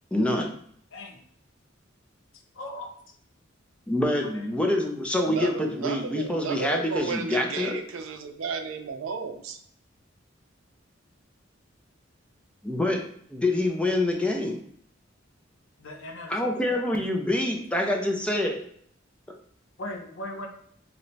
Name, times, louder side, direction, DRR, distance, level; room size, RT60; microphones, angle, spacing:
voice 1, 0.1-0.5 3.9-7.8 12.6-13.0 13.3-14.6 16.3-18.6, left 1 dB, 5° left, 1 dB, 0.4 m, -26 dB
voice 2, 2.6-2.9 4.3-4.4 15.8-17.0 19.8-20.5, left 1 dB, 70° left, 3 dB, 0.6 m, -39 dB
voice 3, 5.2-9.6, right 5 dB, 90° right, 7 dB, 0.4 m, -33 dB
2.9 x 2.1 x 4.0 m, 0.63 s
head